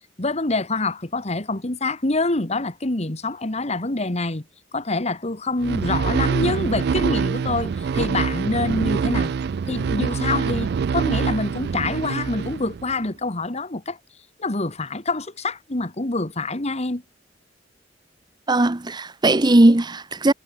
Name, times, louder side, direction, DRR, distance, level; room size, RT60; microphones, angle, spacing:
voice 1, 0.2-4.4 4.7-9.3 9.7-14.0 14.4-17.0, left 2 dB, 35° left, 1.9 m, -26 dB
sound 1, 5.6-13.0, right 6 dB, 65° right, 0.4 m, -25 dB
voice 2, 18.5-20.3, right 2 dB, 25° right, 0.8 m, -17 dB
head